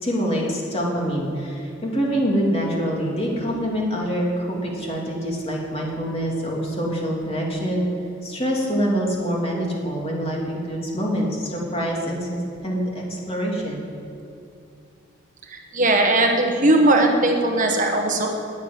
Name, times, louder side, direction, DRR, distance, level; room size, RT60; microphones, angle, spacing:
voice 1, 0.0-7.9 8.2-13.8, equal, 30° left, -2 dB, 3.0 m, -25 dB
voice 2, 15.7-18.3, right 2 dB, 40° right, 3 dB, 1.3 m, -18 dB
10.5 x 10.0 x 9.5 m, 2.6 s
head